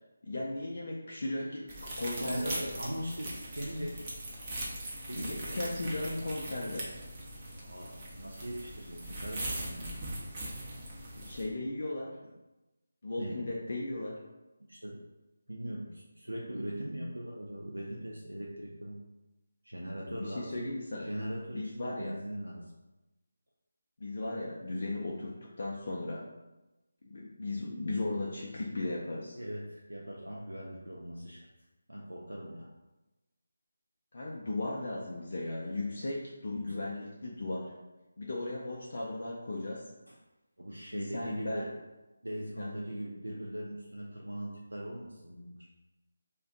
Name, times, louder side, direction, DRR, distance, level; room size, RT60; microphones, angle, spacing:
voice 1, 0.2-2.7 5.1-6.9 11.2-12.2 13.0-14.2 20.1-21.1 21.5-22.1 24.0-25.3 25.6-26.2 27.0-29.4 34.1-37.7 38.2-39.8 40.9-41.7 42.5-42.7, left 2 dB, 50° left, -4 dB, 0.4 m, -36 dB
sound 1, 1.7-11.4, right 1 dB, 25° right, 0.6 m, -40 dB
voice 2, 2.2-4.1 5.0-5.7 7.6-9.9 13.2-13.4 14.7-15.0 15.5-19.0 19.6-20.7 21.0-22.7 29.3-31.5 31.9-32.7 36.5-36.9 40.1-40.2 40.6-41.7 42.2-45.7, right 1 dB, 85° right, -1 dB, 0.4 m, -40 dB
2.4 x 2.2 x 3.7 m, 1.0 s
figure-of-eight pair, 155°, 0 cm